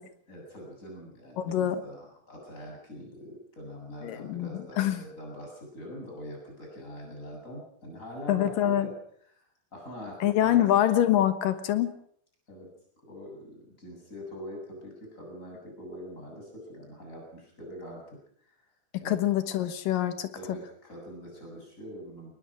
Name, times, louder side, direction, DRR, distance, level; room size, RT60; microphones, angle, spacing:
voice 1, 0.3-9.0 9.3-9.5 9.7-10.7 11.0-11.1 12.5-12.7 13.0-18.7 19.0-19.5 20.3-22.3, equal, 20° left, 0 dB, 8.2 m, -43 dB
voice 2, 1.4-1.8 4.0-5.0 8.3-8.9 10.2-11.9 19.1-20.3, left 11 dB, 75° left, 11 dB, 2.9 m, -25 dB
22.5 x 19.5 x 6.3 m, 0.64 s
omnidirectional pair, 4.1 m